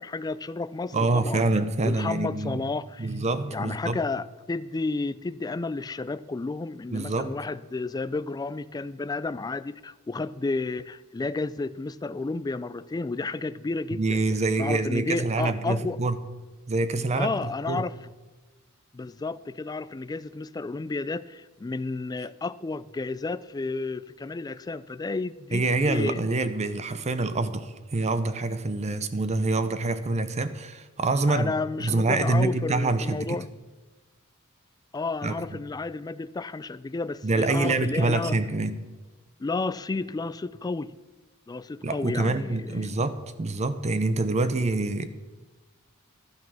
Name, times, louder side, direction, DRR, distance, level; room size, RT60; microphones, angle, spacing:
voice 1, 0.0-1.5 1.8-3.1 3.5-14.2 14.6-16.0 17.2-17.9 18.9-26.2 31.3-33.5 34.9-38.4 39.4-41.0 41.5-42.9, left 3 dB, 20° left, 15 dB, 0.3 m, -32 dB
voice 2, 0.9-2.7 3.0-4.0 6.9-7.3 13.9-16.2 16.7-17.3 17.7-17.8 25.5-31.5 31.8-33.4 35.2-35.6 37.2-38.7 41.8-45.1, right 2 dB, 30° right, 12 dB, 0.6 m, -26 dB
12.0 x 9.3 x 6.2 m, 1.2 s
head